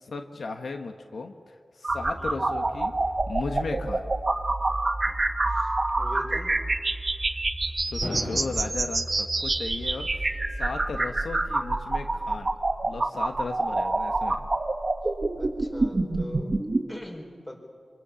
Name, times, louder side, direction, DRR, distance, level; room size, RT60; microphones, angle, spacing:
voice 1, 0.0-2.9 3.3-4.0 7.9-10.3 10.6-12.5 12.8-14.5, left 4 dB, 85° left, 5 dB, 1.3 m, -36 dB
sound 1, 1.8-16.8, right 2 dB, 40° right, 1.6 m, -27 dB
voice 2, 5.5-6.5 10.3-10.4 10.7-10.8 11.0-11.1 15.3-16.6 16.9-17.6, left 1 dB, 20° left, 1 dB, 4.9 m, -42 dB
sound 2, 8.0-9.0, left 1 dB, 50° left, 6.8 m, -34 dB
26.0 x 25.0 x 7.1 m, 2.1 s
wide cardioid pair, 80°, 0 cm